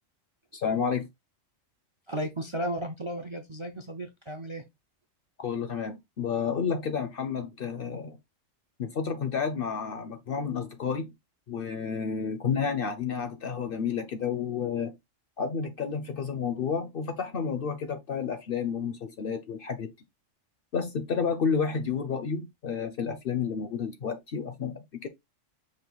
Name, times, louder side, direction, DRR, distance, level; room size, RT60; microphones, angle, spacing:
voice 1, 0.5-1.1 5.4-8.2 8.8-11.1 11.5-14.9 15.4-19.9 20.7-25.1, left 6 dB, 55° left, 0.7 m, -30 dB
voice 2, 2.1-4.6, right 1 dB, 35° right, 0.5 m, -34 dB
5.3 x 2.5 x 3.9 m
omnidirectional pair, 1.3 m